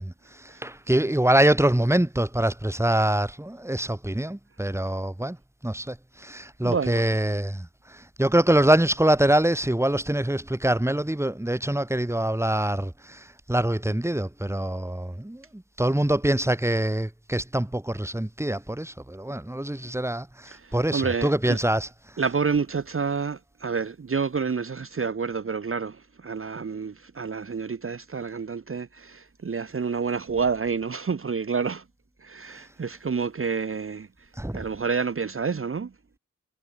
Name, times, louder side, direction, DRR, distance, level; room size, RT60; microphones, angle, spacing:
voice 1, 0.0-5.4 5.6-21.9 34.4-34.6, right 1 dB, 10° right, 2.0 m, -24 dB
voice 2, 6.6-7.0 20.5-21.6 22.2-31.8 32.2-35.9, right 5 dB, 45° right, 0.9 m, -29 dB
cardioid pair, 50°, 31 cm